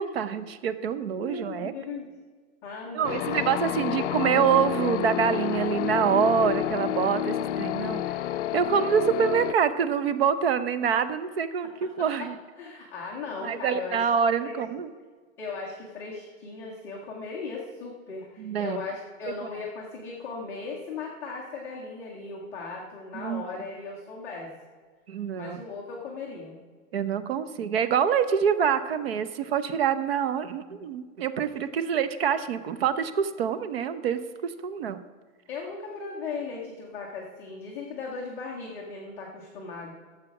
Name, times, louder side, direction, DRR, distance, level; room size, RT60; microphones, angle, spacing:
voice 1, 0.0-1.7 2.9-8.0 8.5-12.4 13.4-14.9 18.4-18.8 23.1-23.4 25.1-25.6 26.9-35.0, right 7 dB, 45° right, 13 dB, 0.7 m, -26 dB
voice 2, 1.2-2.1 2.6-4.1 11.6-12.3 12.6-14.1 14.4-14.6 15.4-24.5 25.4-26.6 35.5-39.9, left 4 dB, 5° left, -6 dB, 0.4 m, -37 dB
sound 1, 3.0-9.5, left 12 dB, 60° left, 0.5 m, -29 dB
12.5 x 7.2 x 5.8 m, 1.5 s
hypercardioid pair, 160°, 41 cm